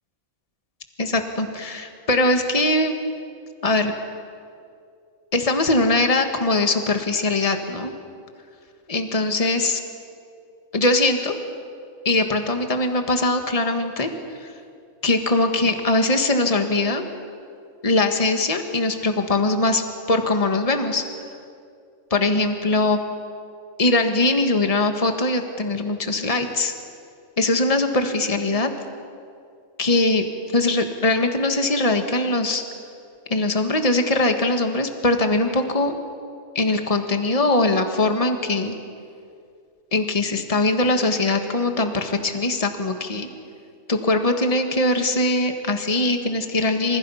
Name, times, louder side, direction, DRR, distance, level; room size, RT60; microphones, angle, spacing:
voice 1, 1.0-3.0 3.6-3.9 5.3-7.9 8.9-9.8 10.7-11.3 12.0-14.1 14.4-14.5 15.0-17.0 17.8-21.0 22.1-23.0 23.8-26.7 27.4-28.7 29.8-30.3 30.5-32.6 33.3-35.9 36.5-38.8 39.9-43.3 43.9-47.0, left 2 dB, 25° left, 6 dB, 1.7 m, -21 dB
28.0 x 26.5 x 5.7 m, 2.3 s
omnidirectional pair, 1.4 m